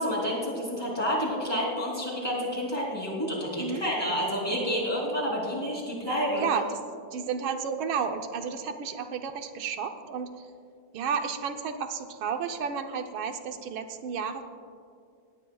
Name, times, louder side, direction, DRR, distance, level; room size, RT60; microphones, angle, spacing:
voice 1, 0.0-6.5, equal, 10° left, -4 dB, 3.2 m, -29 dB
voice 2, 6.4-6.8 7.1-10.5 10.9-14.4, right 6 dB, 90° right, 6 dB, 1.7 m, -32 dB
19.0 x 17.0 x 2.3 m, 2.3 s
omnidirectional pair, 2.2 m